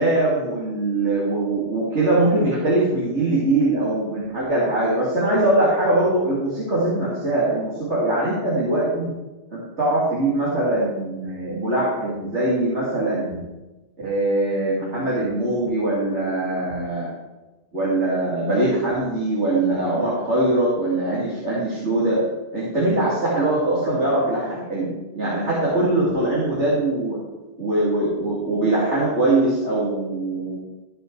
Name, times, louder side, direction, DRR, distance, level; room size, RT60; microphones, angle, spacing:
voice 1, 0.0-9.1 9.5-13.4 14.0-17.1 17.7-22.2 22.5-27.2 27.6-30.6, right 2 dB, 75° right, -8 dB, 2.9 m, -22 dB
14.0 x 5.3 x 4.7 m, 1.1 s
omnidirectional pair, 1.2 m